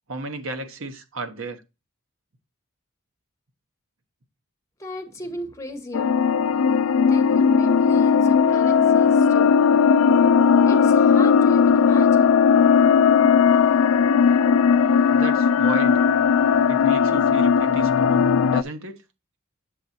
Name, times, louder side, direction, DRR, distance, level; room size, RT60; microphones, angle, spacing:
voice 1, 0.1-1.6 14.2-14.7 15.1-16.0 16.7-19.0, right 2 dB, 70° right, 1.1 m, -34 dB
voice 2, 4.8-6.1 7.1-9.6 10.7-12.4, equal, 15° left, 1.3 m, -36 dB
sound 1, 5.9-18.6, left 6 dB, 75° left, 0.3 m, -17 dB
7.6 x 7.4 x 2.7 m
head